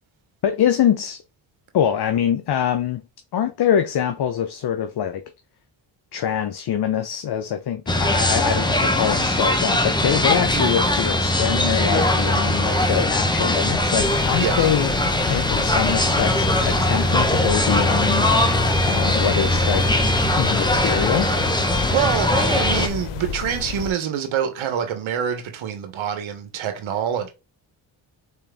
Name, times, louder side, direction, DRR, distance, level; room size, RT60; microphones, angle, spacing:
voice 1, 0.4-1.2 1.7-3.0 3.3-5.2 6.1-14.9 15.3-18.3 18.8-19.9 20.4-21.3, left 9 dB, 55° left, 0.7 m, -24 dB
sound 1, 7.9-22.9, left 1 dB, 10° left, 1.0 m, -20 dB
voice 2, 10.5-10.8 14.4-14.7 21.9-27.3, right 8 dB, 75° right, 1.3 m, -26 dB
sound 2, 14.0-23.9, left 7 dB, 90° left, 0.8 m, -32 dB
4.4 x 3.5 x 3.5 m
cardioid pair, 75°, 47 cm